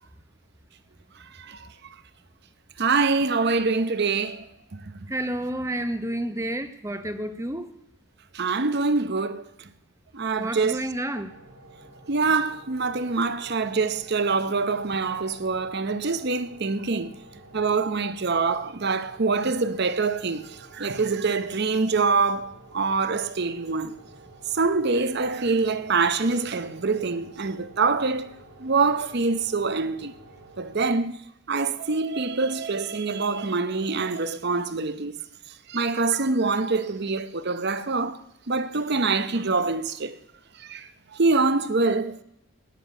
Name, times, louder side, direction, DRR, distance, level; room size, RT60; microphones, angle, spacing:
voice 1, 1.4-1.7 2.8-4.4 8.3-9.4 10.1-10.8 12.1-17.1 17.5-23.9 24.5-28.3 28.6-30.1 30.6-31.2 31.5-35.1 35.7-38.2 38.5-40.2 40.6-40.9 41.1-42.2, right 4 dB, 50° right, 0.8 m, -25 dB
voice 2, 5.1-7.7 10.4-11.3, right 1 dB, 15° right, 0.8 m, -30 dB
sound 1, 11.3-30.9, right 2 dB, 85° right, 2.9 m, -50 dB
15.0 x 10.5 x 6.0 m
head